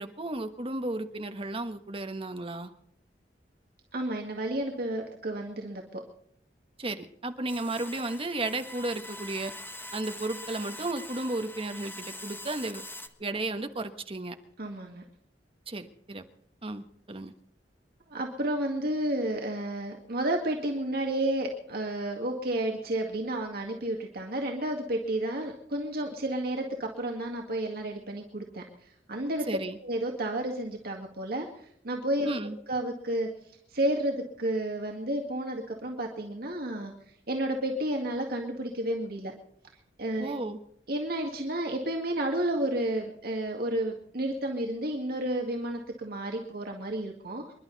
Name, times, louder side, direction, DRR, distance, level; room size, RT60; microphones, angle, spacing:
voice 1, 0.0-2.7 6.8-9.5 9.9-12.8 13.2-14.4 15.7-16.2 16.6-17.3 29.5-29.8 32.2-32.6 40.2-40.6, right 2 dB, 30° right, 8 dB, 1.3 m, -34 dB
voice 2, 3.9-6.0 14.6-15.0 18.1-28.6 29.1-29.5 29.8-32.3 32.7-33.3 33.7-36.9 37.3-39.3 40.0-40.3 40.9-47.5, right 1 dB, 60° right, 1 dB, 2.1 m, -31 dB
sound 1, 7.5-13.1, left 1 dB, 10° left, 1.3 m, -43 dB
27.0 x 11.5 x 4.1 m, 0.70 s
head